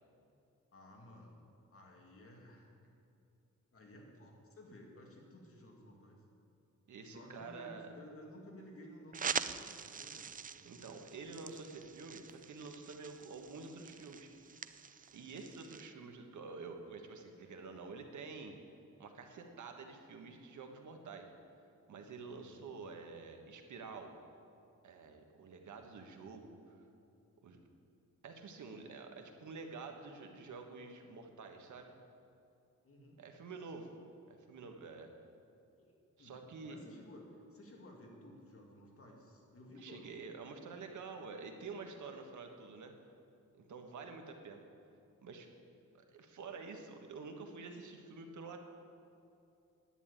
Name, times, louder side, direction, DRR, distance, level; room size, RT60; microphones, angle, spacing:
voice 1, 0.7-1.4 1.7-2.7 3.7-6.2 7.1-10.3 22.3-22.6 32.8-33.2 35.8-37.2 37.5-40.1, left 1 dB, 50° left, -1 dB, 2.6 m, -55 dB
voice 2, 6.9-7.9 10.6-14.3 15.1-18.6 19.0-21.3 21.9-24.1 24.8-26.8 27.4-27.6 28.2-31.9 33.2-33.9 34.3-35.1 36.2-36.8 39.8-42.9 43.5-44.6 45.2-45.5 45.9-48.7, right 4 dB, 75° right, 4 dB, 1.5 m, -48 dB
sound 1, 9.1-15.9, right 6 dB, 30° right, 0.4 m, -44 dB
11.0 x 9.4 x 8.9 m, 2.6 s
wide cardioid pair, 130°, 30 cm